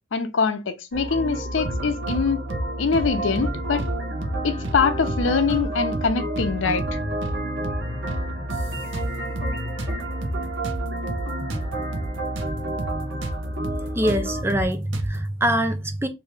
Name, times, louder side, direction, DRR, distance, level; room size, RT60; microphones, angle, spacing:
voice 1, 0.1-2.4 2.8-3.8 4.4-7.0, left 5 dB, 85° left, 0.5 m, -23 dB
sound 1, 0.9-14.4, right 1 dB, 60° right, 1.1 m, -30 dB
sound 2, 1.6-2.2 2.5-2.7 2.9-3.9 4.2-4.4 4.6-5.7 5.9-6.1 6.4-7.4 7.6-7.8 8.1-9.5 9.8-12.5 12.8-12.9 13.2-15.2, right 2 dB, 90° right, 0.6 m, -31 dB
voice 2, 14.0-16.1, right 1 dB, 15° right, 0.4 m, -24 dB
2.8 x 2.6 x 3.2 m
head